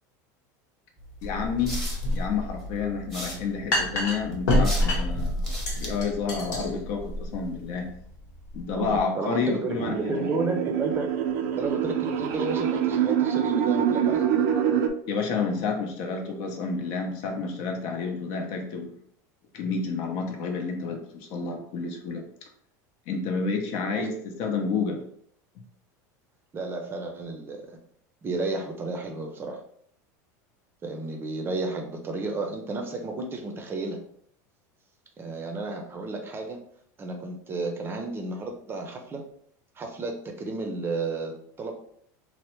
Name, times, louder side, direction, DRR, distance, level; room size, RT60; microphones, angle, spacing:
sound 1, 1.0-7.9, equal, ahead, 0.8 m, -41 dB
sound 2, 1.2-9.0, left 1 dB, 90° left, 1.0 m, -28 dB
voice 1, 1.2-1.8 2.1-5.5 5.8-7.9 8.5-10.3 15.1-18.9 19.5-22.2 23.1-25.0, left 5 dB, 65° left, 3 dB, 0.7 m, -30 dB
voice 2, 8.7-11.1 11.6-14.3 24.0-24.1 26.5-27.8 28.2-29.6 30.8-34.0 35.2-36.6 37.0-39.2 39.8-41.7, right 3 dB, 25° right, 3 dB, 0.5 m, -32 dB
sound 3, 9.7-14.9, right 9 dB, 75° right, 0.4 m, -25 dB
3.2 x 2.1 x 3.0 m, 0.65 s
supercardioid pair, 125°, 9 cm